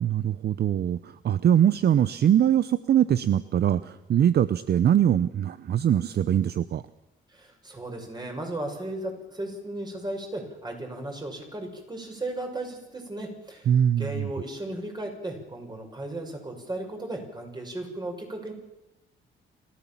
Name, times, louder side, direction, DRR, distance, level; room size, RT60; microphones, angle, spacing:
voice 1, 0.0-6.8 13.7-14.3, right 10 dB, 55° right, 15 dB, 0.7 m, -22 dB
voice 2, 7.3-18.5, right 1 dB, 20° right, 3 dB, 6.5 m, -35 dB
29.0 x 14.0 x 7.3 m, 0.97 s
cardioid pair, 90°, 20 cm